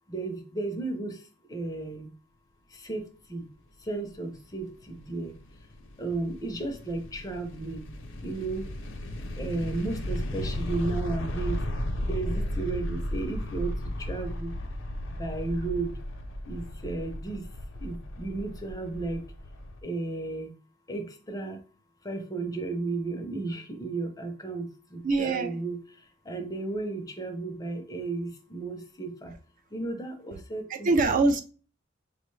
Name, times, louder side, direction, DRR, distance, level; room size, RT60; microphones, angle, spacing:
voice 1, 0.1-2.1 2.7-3.4 3.8-5.3 6.0-7.8 8.2-8.7 9.4-11.6 12.0-14.5 15.1-15.9 16.5-17.5 17.8-19.2 19.8-20.5 20.9-21.6 22.0-25.8 26.2-29.3 29.7-30.9, right 3 dB, 20° left, 5 dB, 0.5 m, -34 dB
sound 1, 4.3-19.8, left 1 dB, 65° left, 0.6 m, -35 dB
voice 2, 25.0-25.6 30.7-31.4, right 3 dB, 40° right, 6 dB, 0.4 m, -24 dB
5.8 x 2.2 x 3.1 m, 0.37 s
head